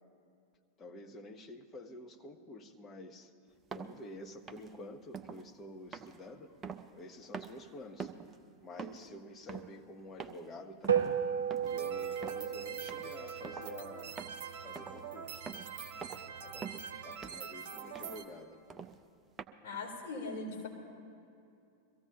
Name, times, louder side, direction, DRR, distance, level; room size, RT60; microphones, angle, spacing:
voice 1, 0.8-3.3 3.7-6.5 6.9-8.1 8.6-11.2 11.7-14.2 14.6-15.4 16.0-18.6, left 1 dB, 25° left, 4 dB, 1.0 m, -49 dB
sound 1, 3.7-3.9 4.5-4.7 5.1-5.4 5.9-7.1 7.3-7.6 8.0-8.4 8.8-9.1 9.5-9.8 10.2-10.5 10.8-11.1 11.5-11.8 12.2-12.4 12.9-13.1 13.4-13.8 14.2-14.4 14.8-15.0 15.5-15.7 16.0-16.3 16.6-16.9 17.2-17.5 18.0-18.2 18.7-19.0 19.4-19.5, right 6 dB, 20° right, 0.6 m, -45 dB
sound 2, 10.9-15.5, right 8 dB, 65° right, 0.9 m, -35 dB
sound 3, 11.6-18.2, right 6 dB, 50° right, 1.3 m, -45 dB
voice 2, 19.6-20.7, left 3 dB, 50° left, -3 dB, 3.7 m, -40 dB
23.0 x 15.0 x 3.0 m, 2.5 s
figure-of-eight pair, 90°, 0 cm